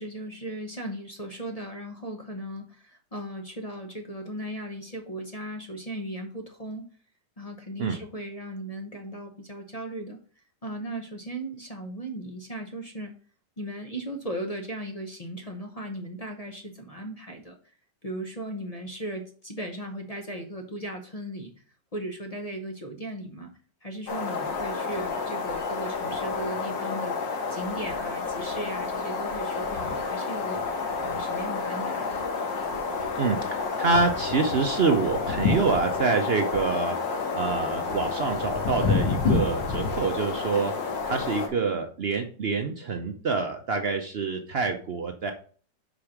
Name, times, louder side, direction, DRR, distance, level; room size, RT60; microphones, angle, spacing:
voice 1, 0.0-6.8 7.4-10.2 10.6-13.1 13.6-17.6 18.0-21.5 21.9-23.5 23.8-32.2, right 1 dB, 35° left, 3 dB, 0.6 m, -37 dB
sound 1, 24.1-41.5, left 4 dB, 85° left, 2.1 m, -29 dB
voice 2, 33.2-37.0 37.3-45.3, right 4 dB, 70° right, 5 dB, 0.6 m, -26 dB
5.2 x 5.0 x 5.9 m, 0.43 s
omnidirectional pair, 2.0 m